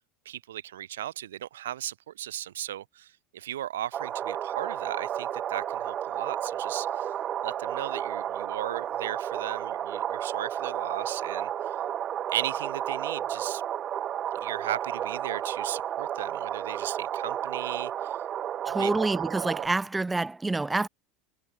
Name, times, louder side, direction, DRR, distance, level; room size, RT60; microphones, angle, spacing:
voice 1, 0.2-7.1 7.4-11.8 12.3-13.6 14.4-18.2 18.8-18.9, right 12 dB, 85° right, 2.8 m, -36 dB
sound 1, 3.9-19.7, right 10 dB, 40° right, 5.5 m, -32 dB
voice 2, 18.7-20.9, right 3 dB, 15° right, 2.0 m, -27 dB
hypercardioid pair, 85°, 0 cm